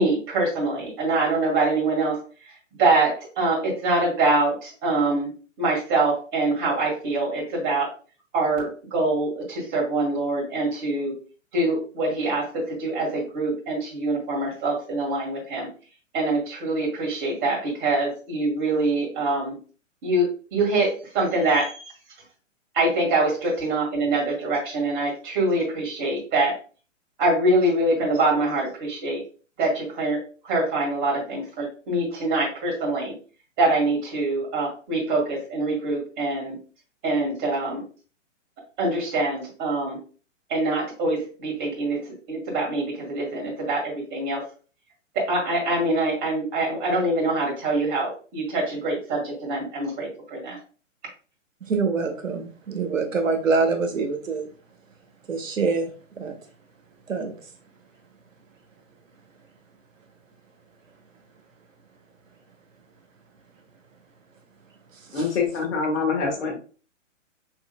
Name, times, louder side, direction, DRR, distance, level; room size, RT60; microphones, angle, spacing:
voice 1, 0.0-2.2 2.8-3.1 3.4-5.3 5.6-7.9 8.3-11.1 11.5-15.7 16.1-19.5 20.0-20.9 21.1-21.9 22.7-26.5 27.2-29.2 29.6-30.2 30.4-33.1 33.6-36.6 37.0-37.8 38.8-40.0 40.5-42.0 42.3-44.4 45.3-50.6, right 2 dB, 25° right, -2 dB, 2.0 m, -24 dB
voice 2, 51.7-54.5 55.3-55.9 56.2-56.3 57.1-57.3 65.1-65.2, right 4 dB, 90° right, 6 dB, 1.0 m, -25 dB
voice 3, 65.1-66.6, left 4 dB, 60° left, 0 dB, 1.6 m, -25 dB
6.2 x 2.8 x 2.3 m, 0.37 s
hypercardioid pair, 130°, 38 cm